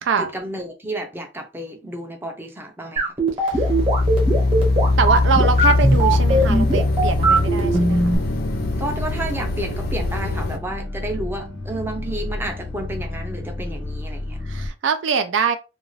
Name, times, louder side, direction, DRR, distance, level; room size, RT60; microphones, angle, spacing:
voice 1, 0.2-3.1 8.8-14.4, right 1 dB, 10° right, 0.5 m, -31 dB
sound 1, 3.0-8.2, right 2 dB, 30° right, 1.0 m, -19 dB
voice 2, 3.4-3.7 5.0-8.2 14.5-15.6, right 6 dB, 70° right, 0.4 m, -23 dB
sound 2, 3.5-10.6, left 2 dB, 50° left, 0.6 m, -21 dB
sound 3, 5.0-14.7, left 2 dB, 85° left, 0.9 m, -31 dB
2.4 x 2.3 x 3.1 m
head